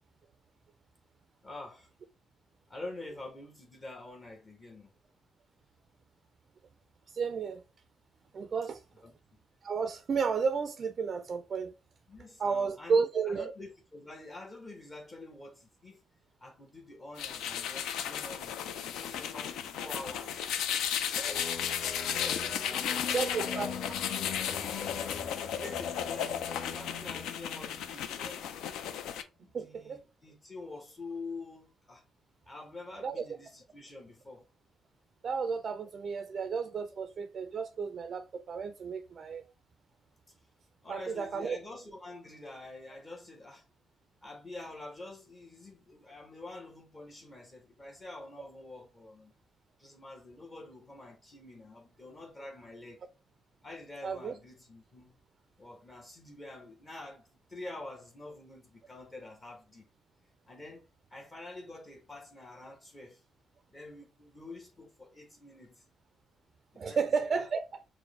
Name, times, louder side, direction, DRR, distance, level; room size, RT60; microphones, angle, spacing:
voice 1, 1.4-1.9 2.7-4.9 9.0-9.4 12.1-16.0 16.4-20.5 21.1-21.5 22.0-23.9 25.4-26.5 26.7-28.6 29.4-32.0 32.5-34.5 40.3-40.4 40.8-43.6 44.2-49.3 49.8-53.1 53.6-55.1 55.6-59.9 60.5-63.2 63.7-65.8 66.7-67.5, left 2 dB, 30° left, 0.9 m, -47 dB
voice 2, 7.1-7.6 8.3-8.8 9.6-11.7 12.4-13.5 23.1-23.7 29.5-30.0 33.0-33.2 35.2-39.4 40.9-41.6 54.0-54.3 66.8-67.6, right 5 dB, 50° right, 0.3 m, -32 dB
sound 1, 17.2-29.2, left 9 dB, 85° left, 0.4 m, -35 dB
sound 2, 21.2-28.6, left 5 dB, 60° left, 0.9 m, -42 dB
4.6 x 2.1 x 3.1 m
cardioid pair, 90°, 0 cm